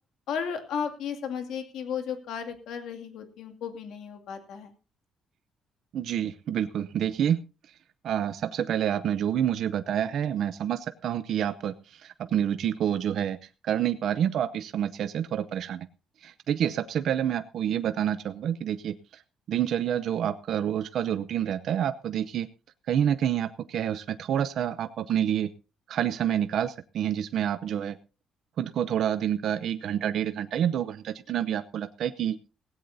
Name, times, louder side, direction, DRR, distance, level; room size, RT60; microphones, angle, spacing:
voice 1, 0.3-4.7, left 7 dB, 70° left, 5 dB, 2.4 m, -34 dB
voice 2, 5.9-7.4 8.0-13.4 13.6-15.9 16.2-19.2 19.5-22.5 22.9-25.5 25.9-28.0 28.6-32.4, right 9 dB, 55° right, 11 dB, 0.7 m, -28 dB
17.0 x 17.0 x 2.7 m, 0.31 s
cardioid pair, 175°, 0 cm